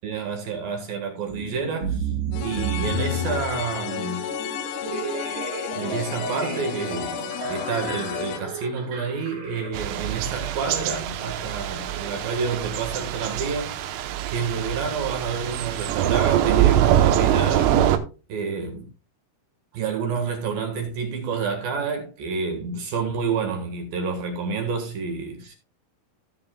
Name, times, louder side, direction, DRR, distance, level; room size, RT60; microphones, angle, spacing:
voice 1, 0.0-2.0 2.4-4.2 5.8-13.7 14.3-17.8 18.3-18.8 19.7-25.5, right 5 dB, 60° right, 2.7 m, -29 dB
sound 1, 1.3-13.9, right 3 dB, 40° right, 4.1 m, -34 dB
sound 2, 2.3-8.4, left 9 dB, 85° left, 3.7 m, -32 dB
Thunder / Rain, 9.7-18.0, right 12 dB, 90° right, 3.7 m, -23 dB
16.0 x 7.2 x 2.3 m
omnidirectional pair, 6.0 m